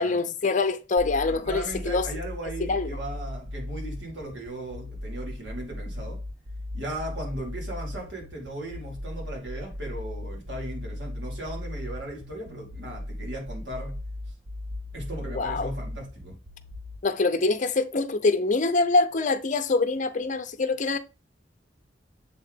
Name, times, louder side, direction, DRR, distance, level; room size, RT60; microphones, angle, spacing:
voice 1, 0.0-2.1 2.6-2.9 15.3-15.7 17.0-21.0, left 3 dB, 45° left, 0.7 m, -24 dB
sound 1, 1.0-17.0, left 1 dB, 50° right, 0.8 m, -37 dB
voice 2, 1.3-6.2 6.7-14.0 14.9-16.4, right 1 dB, 75° right, 2.7 m, -37 dB
7.6 x 3.9 x 3.6 m
head